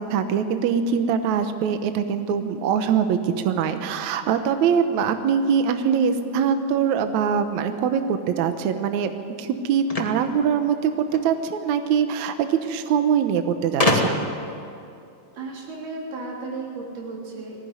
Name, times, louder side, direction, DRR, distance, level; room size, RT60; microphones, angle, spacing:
voice 1, 0.0-9.1 9.4-14.3, right 7 dB, 65° right, 8 dB, 2.0 m, -23 dB
sound 1, 9.9-11.3 12.4-12.5 12.7-12.8 13.8-14.4, left 1 dB, 40° left, 0.5 m, -24 dB
voice 2, 15.3-17.6, right 3 dB, 90° right, -2 dB, 5.4 m, -34 dB
20.0 x 16.5 x 9.5 m, 2.5 s
omnidirectional pair, 4.3 m